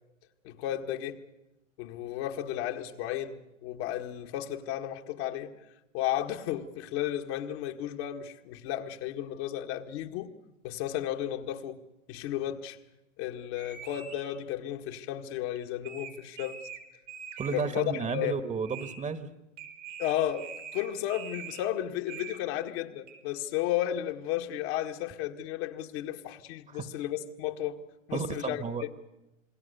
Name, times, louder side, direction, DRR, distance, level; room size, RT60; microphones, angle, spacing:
voice 1, 0.4-1.2 1.8-5.5 5.9-10.3 10.6-11.8 12.1-12.8 13.2-16.6 17.5-18.4 20.0-27.8 28.1-28.6, left 12 dB, 60° left, 1.9 m, -33 dB
sound 1, 13.6-14.3 15.6-15.7 15.8-16.8 17.1-17.6 18.2-18.3 18.6-19.0 19.6-21.6 22.1-22.6 23.1-23.2, right 7 dB, 85° right, 4.2 m, -44 dB
voice 2, 17.4-19.3 26.7-26.9 28.1-28.9, right 5 dB, 20° right, 1.3 m, -33 dB
28.0 x 21.0 x 6.9 m
hypercardioid pair, 110°, 37 cm